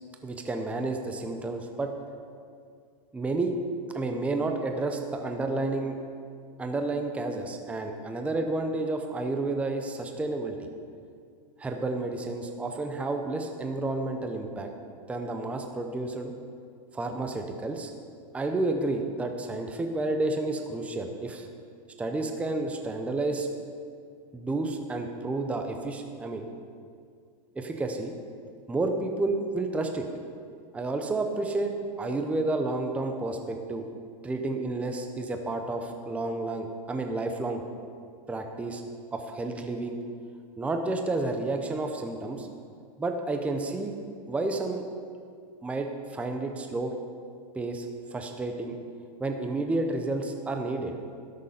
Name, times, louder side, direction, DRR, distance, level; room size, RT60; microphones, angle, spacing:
voice 1, 0.2-1.9 3.1-3.5 3.9-6.0 6.6-10.6 11.6-14.7 15.1-16.3 16.9-17.9 18.3-21.5 22.0-23.5 24.3-26.5 27.6-28.1 28.7-30.0 30.7-33.8 34.2-37.6 38.3-38.8 39.1-40.0 40.6-42.5 43.0-43.9 44.3-44.8 45.6-46.9 47.5-48.8 49.2-50.9, right 2 dB, 5° right, 4 dB, 0.6 m, -30 dB
12.5 x 6.6 x 5.6 m, 2.3 s
supercardioid pair, 140°, 21 cm